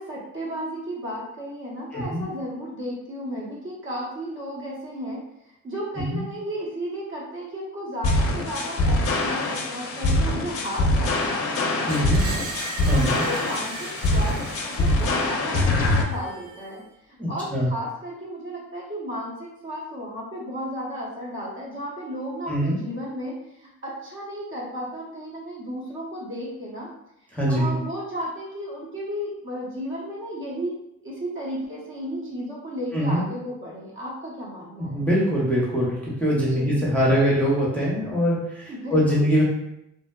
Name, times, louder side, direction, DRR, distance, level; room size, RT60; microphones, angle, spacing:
voice 1, 0.0-12.4 12.9-26.9 27.5-30.8 31.0-35.1 36.4-36.8 38.7-39.3, equal, 40° right, -5 dB, 0.9 m, -34 dB
voice 2, 1.9-2.2 6.0-6.2 11.9-12.3 12.9-13.2 17.2-17.7 22.5-22.8 27.3-27.7 32.9-33.2 34.8-39.4, equal, 5° left, -6 dB, 0.7 m, -23 dB
sound 1, 8.0-16.0, left 2 dB, 50° left, 0.4 m, -23 dB
Screech, 11.9-16.8, right 3 dB, 85° right, 0.5 m, -38 dB
2.7 x 2.1 x 2.2 m, 0.81 s
cardioid pair, 90°, 30 cm